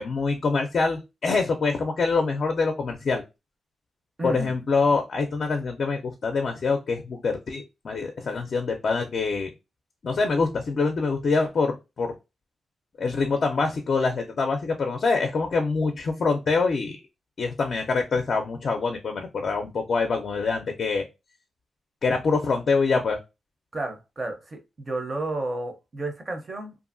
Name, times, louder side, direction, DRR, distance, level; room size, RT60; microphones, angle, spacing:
voice 1, 0.0-3.2 4.2-9.5 10.0-12.1 13.0-17.0 17.4-21.1 22.0-23.2, left 4 dB, 50° left, 0.4 m, -25 dB
voice 2, 4.2-4.5 23.7-26.8, right 2 dB, 30° right, 0.6 m, -32 dB
2.7 x 2.5 x 2.5 m
wide cardioid pair, 115°, 0 cm